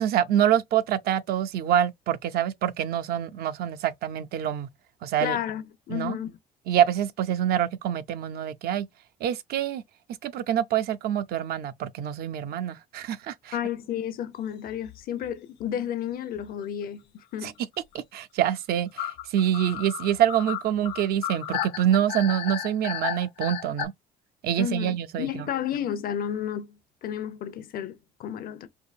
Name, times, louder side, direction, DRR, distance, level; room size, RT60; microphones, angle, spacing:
voice 1, 0.0-4.7 5.0-5.4 5.9-6.2 6.7-8.9 9.2-9.8 10.2-13.6 17.4-17.5 18.1-23.9 24.4-25.4, right 10 dB, 65° right, 0.5 m, -26 dB
voice 2, 5.2-6.4 13.5-17.5 24.6-28.7, left 10 dB, 60° left, 0.7 m, -32 dB
sound 1, 14.7-15.0 15.2-15.3 15.6-15.7 16.6-16.9 19.0-23.9, left 10 dB, 85° left, 0.9 m, -33 dB
4.6 x 2.6 x 2.4 m
cardioid pair, 110°, 17 cm